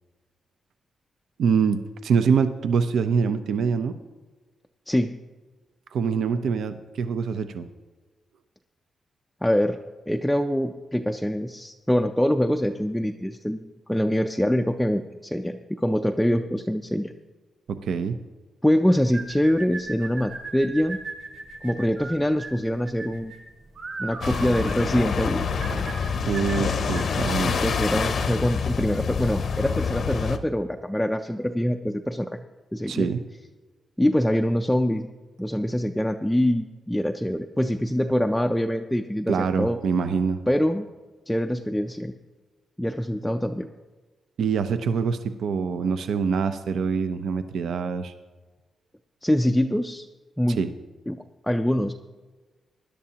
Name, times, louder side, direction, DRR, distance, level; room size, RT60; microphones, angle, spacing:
voice 1, 1.4-3.9 5.9-7.6 17.7-18.2 26.3-27.6 32.9-33.2 39.3-40.4 44.4-48.1 50.6-50.7, right 6 dB, 75° right, 10 dB, 0.6 m, -24 dB
voice 2, 4.9-5.2 9.4-9.8 10.1-13.6 13.9-17.1 18.6-21.0 21.6-23.3 24.0-25.5 27.4-32.4 32.7-33.1 34.0-35.1 35.4-39.8 40.5-40.9 41.3-42.1 42.8-43.7 49.2-50.1 50.4-50.6 51.1-51.2 51.4-51.9, equal, 5° left, 4 dB, 0.4 m, -24 dB
sound 1, 19.1-27.2, right 3 dB, 50° right, 1.8 m, -38 dB
sound 2, 24.2-30.4, left 5 dB, 55° left, 0.7 m, -26 dB
19.5 x 11.0 x 2.9 m, 1.3 s
wide cardioid pair, 155°, 0 cm